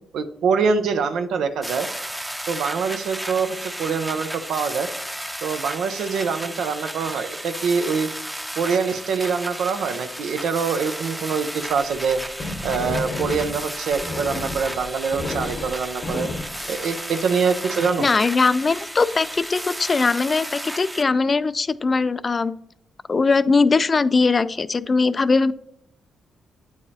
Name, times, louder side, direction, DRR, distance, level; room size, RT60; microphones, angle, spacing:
voice 1, 0.1-1.9 2.5-4.9 5.4-8.1 8.6-12.2 12.6-16.3 16.7-18.1, right 5 dB, 80° right, 8 dB, 0.6 m, -24 dB
sound 1, 1.6-21.0, equal, 5° right, 0.7 m, -33 dB
sound 2, 11.8-17.4, left 2 dB, 55° left, 0.8 m, -32 dB
voice 2, 18.0-22.5 23.1-25.5, left 4 dB, 40° left, 15 dB, 0.3 m, -20 dB
8.6 x 4.7 x 2.8 m, 0.74 s
cardioid pair, 65°, 0 cm